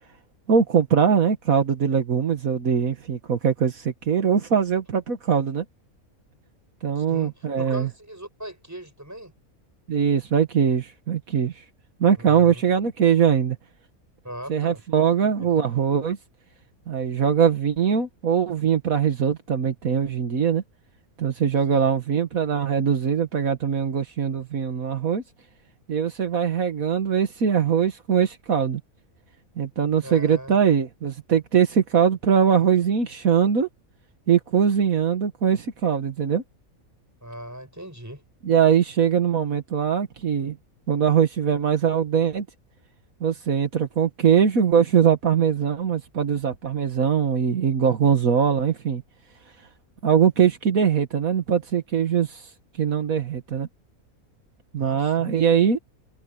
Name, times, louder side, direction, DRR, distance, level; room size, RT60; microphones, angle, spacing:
voice 1, 0.5-5.6 6.8-7.9 9.9-11.5 12.0-13.6 14.5-16.2 16.9-20.6 21.2-25.2 25.9-28.8 29.6-33.7 34.3-36.4 38.5-40.6 40.9-42.5 43.2-49.0 50.0-52.4 52.8-53.7 54.7-55.8, right 7 dB, 75° right, 1.9 m, -21 dB
voice 2, 6.9-9.3 12.2-12.6 14.2-14.8 15.4-15.6 21.7-21.9 30.0-30.6 37.2-38.2 54.8-55.4, right 1 dB, 10° right, 6.6 m, -39 dB
omnidirectional pair, 1.5 m